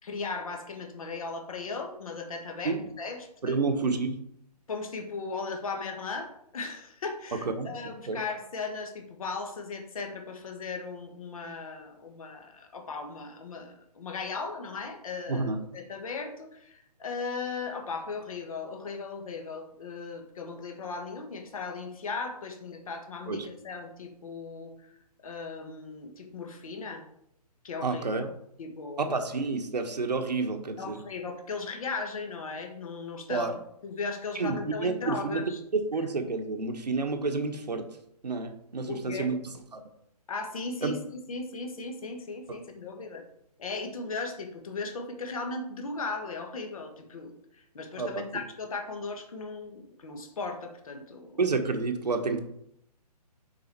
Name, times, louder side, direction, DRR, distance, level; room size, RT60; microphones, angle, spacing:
voice 1, 0.0-3.6 4.7-25.0 25.2-27.0 27.6-28.3 28.6-29.0 30.8-35.6 36.0-36.1 38.9-39.3 40.3-43.2 43.6-51.4, left 4 dB, 60° left, 4 dB, 1.6 m, -37 dB
voice 2, 3.4-4.2 7.4-7.7 8.1-8.2 15.3-15.6 23.3-23.5 27.8-28.3 29.0-31.0 33.3-33.5 34.3-35.4 35.7-37.9 38.2-39.4 39.7-39.8 40.8-40.9 48.0-48.3 51.4-52.4, right 4 dB, 80° right, 6 dB, 1.2 m, -29 dB
7.0 x 4.8 x 4.5 m, 0.75 s
hypercardioid pair, 145°, 21 cm